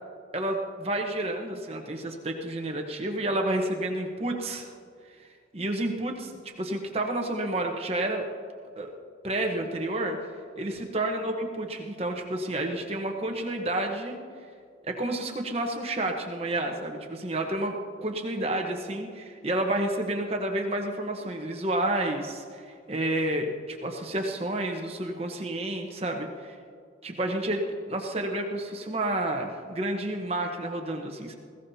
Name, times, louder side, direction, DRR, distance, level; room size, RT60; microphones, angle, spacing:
voice 1, 0.3-4.6 5.5-6.3 6.6-8.2 8.8-8.9 9.2-10.2 10.6-14.2 14.9-22.6 22.9-26.5 27.0-31.4, right 1 dB, 30° right, 2 dB, 1.1 m, -30 dB
20.0 x 16.5 x 2.8 m, 2.2 s
head